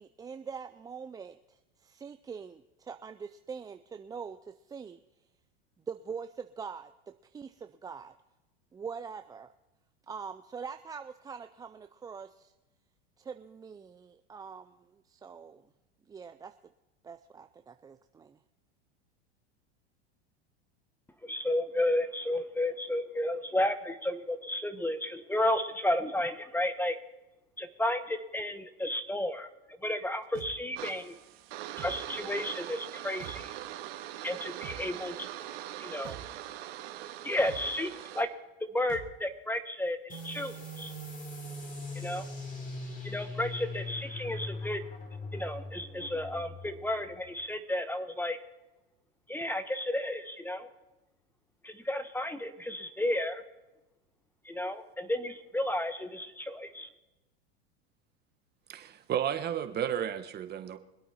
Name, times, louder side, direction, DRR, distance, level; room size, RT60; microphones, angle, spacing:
voice 1, 0.0-5.0 5.9-6.9 7.2-8.1 8.7-9.5 10.1-12.5 13.2-15.7 16.1-16.5 17.0-18.4, right 6 dB, 10° right, 8 dB, 0.4 m, -43 dB
voice 2, 21.2-27.0 27.6-29.5 29.8-31.1 31.8-33.5 34.2-35.3 35.8-36.2 37.2-38.3 38.7-40.9 41.9-42.3 43.0-44.8 45.3-48.4 49.3-50.7 51.6-53.4 54.4-56.9, left 1 dB, 5° left, 11 dB, 1.0 m, -32 dB
sound 1, 30.4-30.5 31.8-32.0 33.2-33.4 34.6-34.8 36.0-36.2 37.5-37.7 38.9-39.1, right 12 dB, 50° right, 2.1 m, -44 dB
sound 2, 30.8-38.2, right 13 dB, 70° right, 1.8 m, -42 dB
sound 3, 40.1-47.3, left 2 dB, 25° left, 3.1 m, -41 dB
voice 3, 58.7-60.8, right 9 dB, 30° right, 9 dB, 1.3 m, -32 dB
24.0 x 8.5 x 4.3 m, 1.0 s
hypercardioid pair, 110°, 32 cm